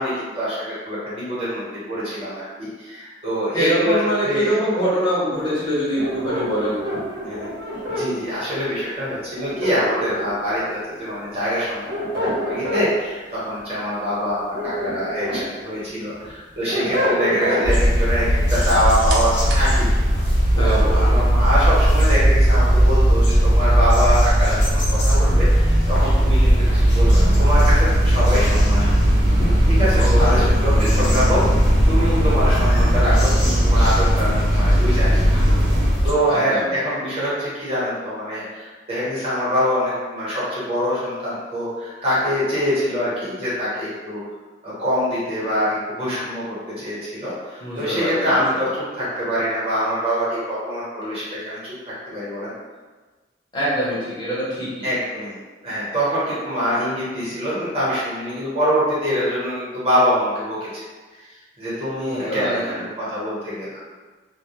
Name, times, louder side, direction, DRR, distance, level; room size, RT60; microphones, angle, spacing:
voice 1, 0.0-4.5 7.2-7.5 7.9-11.8 12.2-19.9 20.6-28.9 29.7-31.4 31.8-35.4 36.0-44.2 44.6-52.5 54.8-55.4 55.6-60.9 61.1-61.3 61.6-63.8, equal, 35° right, -9 dB, 0.9 m, -24 dB
voice 2, 3.5-6.8 20.5-21.2 29.9-30.5 36.3-36.6 47.6-48.3 53.5-54.9 62.0-62.7, equal, 25° left, -9 dB, 0.7 m, -24 dB
sound 1, 6.0-8.1 9.4-10.5 11.6-12.9 14.3-15.4 15.9-17.7, equal, 60° right, 0.8 m, -26 dB
sound 2, 17.6-36.1, equal, 85° left, 0.6 m, -17 dB
sound 3, 19.1-35.9, equal, 80° right, 0.4 m, -27 dB
2.2 x 2.0 x 2.8 m, 1.3 s
head